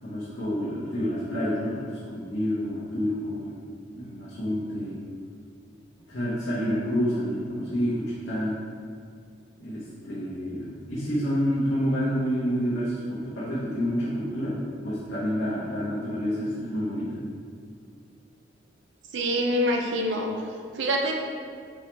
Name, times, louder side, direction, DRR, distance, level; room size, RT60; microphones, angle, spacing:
voice 1, 0.0-3.5 3.8-5.0 6.1-8.6 9.6-17.2, equal, 80° left, -10 dB, 0.9 m, -28 dB
voice 2, 19.1-20.3 20.7-21.1, equal, 75° right, 1 dB, 0.5 m, -25 dB
4.6 x 3.1 x 3.2 m, 2.2 s
head